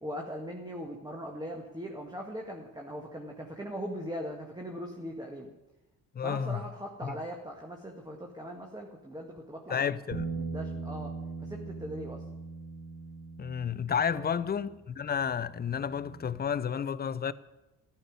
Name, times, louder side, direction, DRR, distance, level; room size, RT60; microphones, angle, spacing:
voice 1, 0.0-5.5 6.2-9.9 10.4-11.1 11.4-12.2 14.1-14.4, equal, 10° right, 1.9 m, -40 dB
voice 2, 6.1-6.6 7.0-7.2 9.7-10.3 13.4-17.3, left 7 dB, 20° left, 0.6 m, -31 dB
Bass guitar, 10.1-16.4, right 3 dB, 65° right, 2.4 m, -41 dB
14.0 x 7.1 x 9.8 m
figure-of-eight pair, 45°, 44 cm